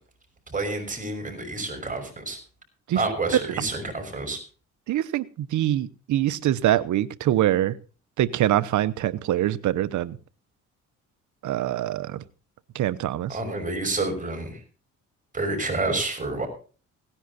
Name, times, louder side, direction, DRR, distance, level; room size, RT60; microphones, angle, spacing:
voice 1, 0.5-2.4 2.9-4.4 13.3-14.6 15.3-16.5, right 2 dB, 25° right, 4 dB, 5.8 m, -29 dB
voice 2, 4.9-7.7 8.2-10.2 11.4-12.2 12.7-13.4, right 13 dB, 75° right, 15 dB, 0.9 m, -24 dB
17.5 x 10.0 x 4.2 m, 0.37 s
cardioid pair, 90°, 30 cm